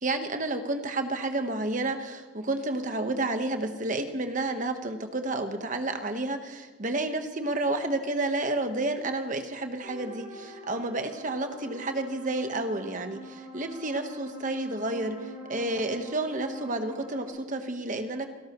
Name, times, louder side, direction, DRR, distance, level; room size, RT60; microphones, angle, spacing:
voice 1, 0.0-18.3, right 2 dB, 40° right, 7 dB, 1.2 m, -30 dB
sound 1, 9.8-17.3, right 1 dB, 75° right, 5.8 m, -44 dB
28.0 x 13.0 x 3.1 m, 1.4 s
head